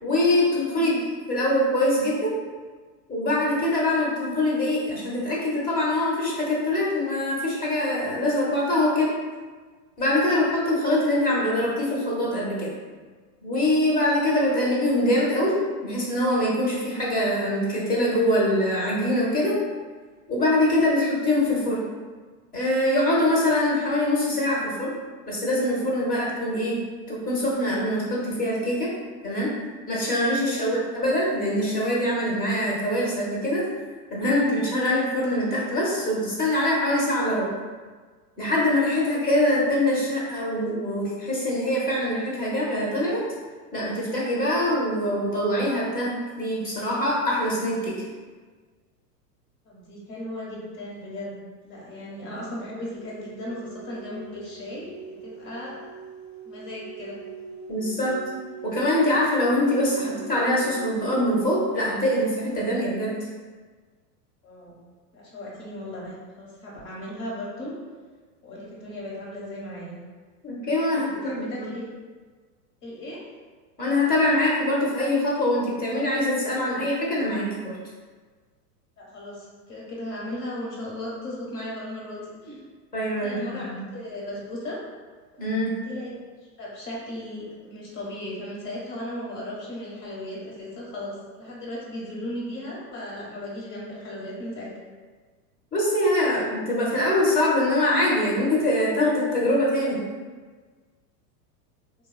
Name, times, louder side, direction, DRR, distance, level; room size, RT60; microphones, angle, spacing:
voice 1, 0.0-0.9 1.3-2.3 3.1-9.1 10.0-12.7 13.4-15.5 15.8-19.6 20.3-21.8 22.5-24.9 25.3-26.8 27.1-28.9 29.2-29.5 29.9-33.7 34.1-37.5 38.4-43.2 43.7-47.9 57.7-58.2 58.6-63.1 70.4-71.7 73.8-77.7 82.9-83.8 85.4-85.7 95.7-100.0, left 1 dB, 20° left, -5 dB, 0.8 m, -23 dB
voice 2, 0.7-1.1 10.9-11.0 30.5-30.8 39.2-39.3 49.6-55.8 56.4-57.2 64.4-64.8 65.1-67.7 68.4-70.0 71.0-71.9 72.8-73.2 79.0-82.6 83.2-84.8 85.8-86.1 86.6-94.7, left 1 dB, 40° left, -5 dB, 1.2 m, -36 dB
sound 1, 52.9-62.0, right 6 dB, 70° left, 1.1 m, -42 dB
3.2 x 2.3 x 2.3 m, 1.4 s
hypercardioid pair, 105°, 48 cm